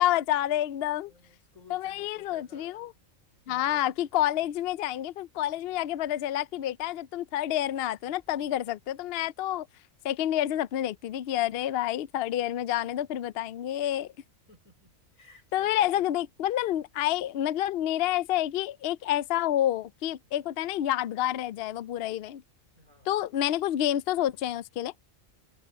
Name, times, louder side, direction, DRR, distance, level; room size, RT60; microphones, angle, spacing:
voice 1, 0.0-1.1 1.7-2.9 3.5-9.7 10.0-14.1 15.5-22.4 23.1-24.9, left 12 dB, 65° left, 0.6 m, -28 dB
voice 2, 1.1-3.1 3.5-4.0 4.4-4.5 14.5-16.1 22.8-23.3, left 2 dB, 90° left, 5.5 m, -55 dB
omnidirectional pair, 1.4 m